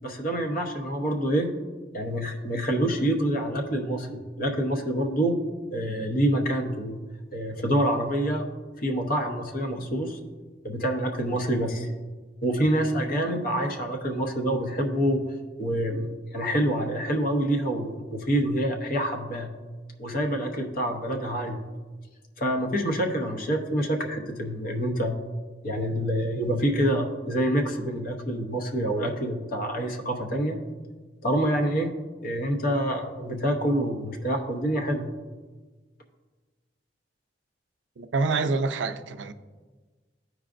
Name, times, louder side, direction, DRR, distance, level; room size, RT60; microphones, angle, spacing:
voice 1, 0.0-1.5 1.9-5.4 5.7-7.0 7.3-8.4 8.8-10.2 10.6-11.9 12.4-15.2 15.6-19.5 20.0-21.6 22.4-25.1 25.6-30.6 31.2-31.9 32.2-35.1, right 1 dB, 50° left, 0.9 m, -26 dB
voice 2, 38.0-39.3, right 3 dB, 75° right, 0.5 m, -26 dB
13.5 x 4.8 x 2.5 m
head